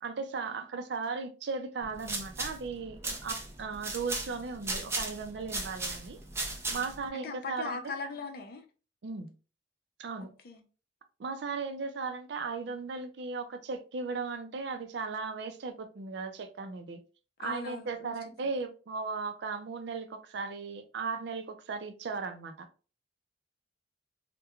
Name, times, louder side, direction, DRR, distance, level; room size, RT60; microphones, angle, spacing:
voice 1, 0.0-6.2 6.7-7.9 9.0-9.3 10.0-10.3 11.2-17.0 17.4-22.7, right 4 dB, 70° right, 0.4 m, -37 dB
sound 1, 1.8-7.1, right 2 dB, 15° right, 0.5 m, -37 dB
voice 2, 6.8-8.6 10.4-10.6 17.4-18.1, left 4 dB, 60° left, 0.5 m, -39 dB
2.3 x 2.1 x 2.9 m
head